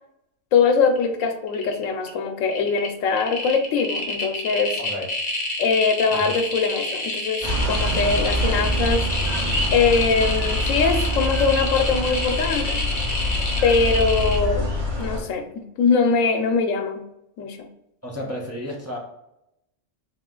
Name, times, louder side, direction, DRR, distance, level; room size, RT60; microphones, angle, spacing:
voice 1, 0.5-4.8 5.6-9.1 9.7-12.8 13.6-14.7 15.0-17.0 17.4-17.7, left 5 dB, 85° left, 6 dB, 1.0 m, -22 dB
sound 1, 0.9-1.2 1.5-2.1 2.4-14.4, left 2 dB, 45° left, 1.0 m, -28 dB
voice 2, 4.8-5.1 6.1-6.4 18.0-19.0, left 1 dB, 15° right, -3 dB, 0.5 m, -32 dB
sound 2, 7.4-15.2, left 1 dB, 55° right, 2.0 m, -25 dB
3.9 x 3.1 x 3.7 m, 0.83 s
omnidirectional pair, 1.3 m